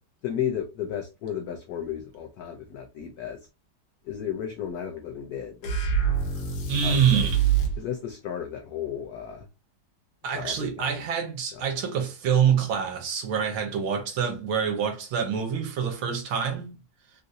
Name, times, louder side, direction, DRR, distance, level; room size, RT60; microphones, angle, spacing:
voice 1, 0.2-3.5 4.0-5.6 6.8-7.3 7.8-9.5 10.3-11.1 11.5-11.6, left 9 dB, 85° left, 0.8 m, -34 dB
sound 1, 5.6-7.8, right 7 dB, 70° left, 1.6 m, -25 dB
voice 2, 6.7-7.4 10.2-16.7, right 7 dB, 85° right, 1.5 m, -26 dB
3.8 x 2.5 x 2.6 m
omnidirectional pair, 2.2 m